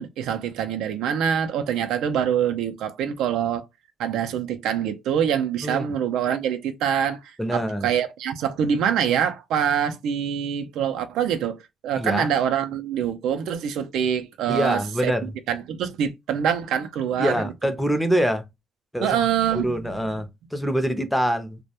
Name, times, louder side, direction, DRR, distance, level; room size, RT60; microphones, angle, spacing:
voice 1, 0.0-3.7 4.0-17.5 19.0-20.0, right 8 dB, 85° right, 0.3 m, -25 dB
voice 2, 7.4-7.9 12.0-12.3 14.5-15.3 17.2-18.4 18.9-19.1 19.5-21.6, equal, 5° left, 0.5 m, -25 dB
2.1 x 2.0 x 2.8 m
cardioid pair, 90°, 0 cm